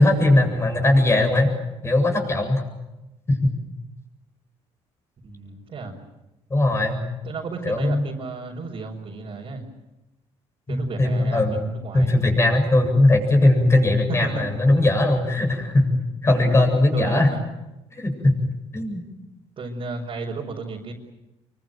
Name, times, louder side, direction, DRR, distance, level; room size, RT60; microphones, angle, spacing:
voice 1, 0.0-1.5 1.8-2.6 3.3-3.5 6.5-7.0 7.6-8.0 10.7-11.6 11.9-17.3 17.9-19.0, left 2 dB, 20° left, 5 dB, 7.8 m, -19 dB
voice 2, 5.2-5.9 7.2-9.7 10.7-12.1 14.1-14.4 16.9-17.4 19.6-20.9, right 4 dB, 45° right, -3 dB, 5.2 m, -33 dB
27.5 x 24.0 x 7.8 m, 0.99 s
cardioid pair, 105°, 12 cm